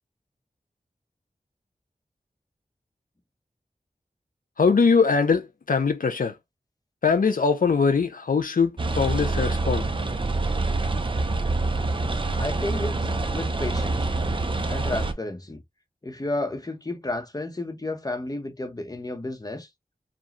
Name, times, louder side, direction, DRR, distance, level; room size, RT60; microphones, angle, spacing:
voice 1, 4.6-6.3 7.0-9.8, left 5 dB, 65° left, 0.5 m, -22 dB
sound 1, 8.8-15.1, right 2 dB, 35° right, 0.7 m, -26 dB
voice 2, 12.4-13.0 13.3-14.1 14.7-15.6 16.0-19.7, left 2 dB, 25° left, 0.9 m, -32 dB
5.0 x 2.3 x 3.0 m
wide cardioid pair, 85°, 15 cm